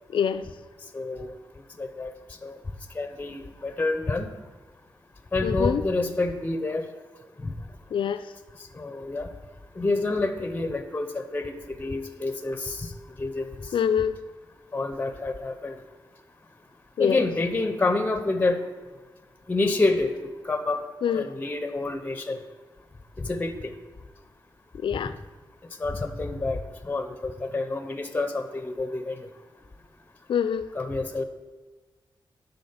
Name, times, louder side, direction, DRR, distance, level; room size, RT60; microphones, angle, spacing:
voice 1, 0.1-0.5 5.4-5.8 7.9-8.2 13.7-14.2 17.0-17.3 21.0-21.3 24.8-25.1 30.3-30.7, left 8 dB, 80° left, 13 dB, 0.3 m, -25 dB
voice 2, 0.9-1.4 1.8-2.1 2.4-2.6 2.9-4.3 5.3-6.9 7.4-7.6 8.6-9.3 9.8-13.8 14.7-15.8 17.0-18.6 19.5-20.8 21.1-22.4 23.2-23.7 25.8-29.3 30.7-31.2, left 2 dB, 20° left, 8 dB, 0.5 m, -28 dB
10.0 x 4.0 x 5.6 m, 1.3 s
wide cardioid pair, 160°, 8 cm